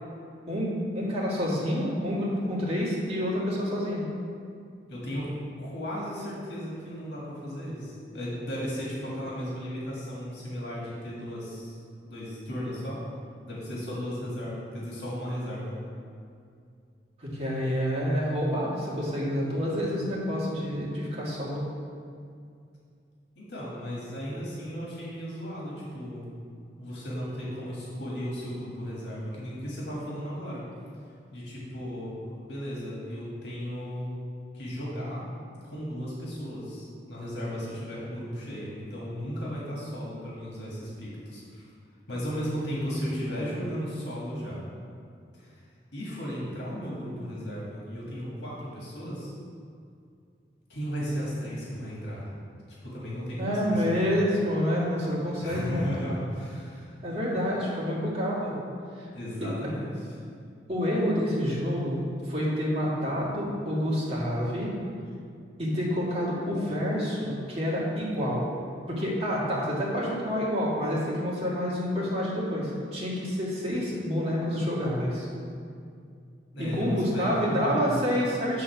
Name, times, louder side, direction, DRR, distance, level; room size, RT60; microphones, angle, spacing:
voice 1, 0.5-4.0 17.2-21.6 53.4-56.2 57.0-58.6 59.0-59.1 59.4-59.7 60.7-64.7 65.6-68.4 68.9-75.3 76.6-78.6, equal, 35° right, -6 dB, 1.9 m, -28 dB
voice 2, 4.9-11.8 12.1-13.0 13.4-15.8 23.4-26.3 26.8-30.6 31.3-34.1 34.5-35.2 35.6-41.7 42.1-44.6 45.3-45.6 45.9-49.3 50.7-52.3 52.8-54.1 55.4-57.0 59.1-60.1 76.5-77.9, equal, 75° left, -5 dB, 1.8 m, -35 dB
8.6 x 3.8 x 5.7 m, 2.3 s
head